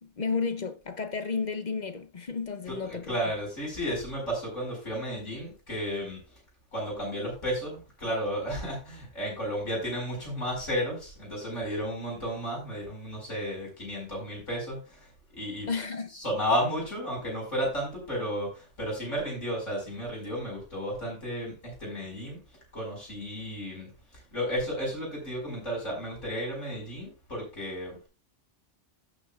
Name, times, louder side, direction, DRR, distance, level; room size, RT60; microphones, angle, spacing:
voice 1, 0.0-3.2 15.7-16.1, left 5 dB, 40° left, 0.8 m, -32 dB
voice 2, 2.7-6.2 6.7-15.1 15.3-15.7 16.1-22.4 22.7-23.9 24.3-28.1, equal, 85° left, 5.5 m, -33 dB
16.0 x 6.4 x 2.4 m
omnidirectional pair, 1.2 m